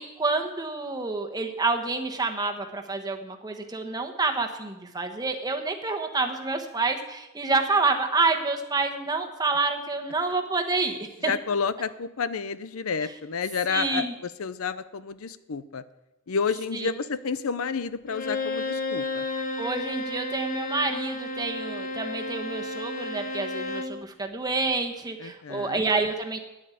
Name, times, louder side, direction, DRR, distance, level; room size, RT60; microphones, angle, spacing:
voice 1, 0.0-11.3 13.7-14.1 16.7-16.9 19.6-26.4, right 3 dB, 20° right, 3 dB, 1.2 m, -28 dB
voice 2, 11.3-15.8 16.3-19.2 25.2-25.8, left 5 dB, 85° left, 14 dB, 0.6 m, -30 dB
Bowed string instrument, 18.1-24.0, left 2 dB, 40° left, 1.3 m, -32 dB
9.9 x 8.6 x 8.5 m, 0.97 s
head